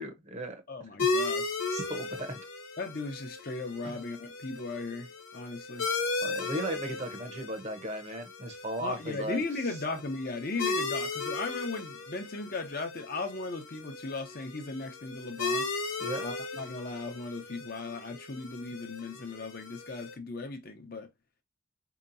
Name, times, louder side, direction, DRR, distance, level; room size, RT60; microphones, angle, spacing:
voice 1, 0.0-0.6 1.7-2.4 3.8-4.0 6.2-9.4 16.0-16.3, right 1 dB, 35° right, 0.8 m, -36 dB
voice 2, 0.7-1.6 2.8-5.9 8.8-15.7 16.2-21.1, left 3 dB, 45° left, 0.7 m, -37 dB
sound 1, 1.0-20.1, left 3 dB, 85° left, 1.0 m, -36 dB
4.4 x 2.9 x 2.6 m
head